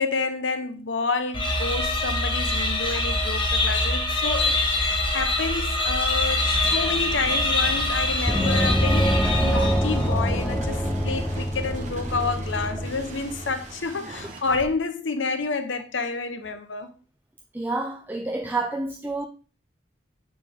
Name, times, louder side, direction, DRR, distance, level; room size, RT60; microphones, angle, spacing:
voice 1, 0.0-9.2 9.4-16.9, left 4 dB, 85° left, 0.9 m, -29 dB
sound 1, 1.3-10.0, left 2 dB, 25° left, 1.5 m, -24 dB
sound 2, 6.3-14.6, right 1 dB, 40° right, 1.4 m, -39 dB
Gong, 8.3-13.5, equal, 5° left, 0.9 m, -25 dB
voice 2, 17.5-19.3, right 3 dB, 10° right, 0.4 m, -29 dB
9.4 x 4.2 x 3.6 m
head